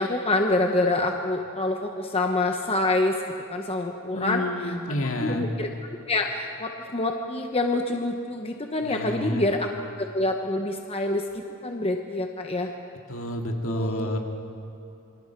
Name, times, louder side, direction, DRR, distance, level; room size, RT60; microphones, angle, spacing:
voice 1, 0.0-3.2 3.5-4.7 5.2-5.7 6.1-9.7 10.0-11.2 11.6-12.7 13.7-14.2, left 2 dB, 25° left, 3 dB, 1.0 m, -26 dB
voice 2, 4.1-5.5 8.8-9.5 13.1-14.2, equal, 65° left, 2 dB, 2.2 m, -29 dB
28.0 x 24.0 x 4.7 m, 2.8 s
head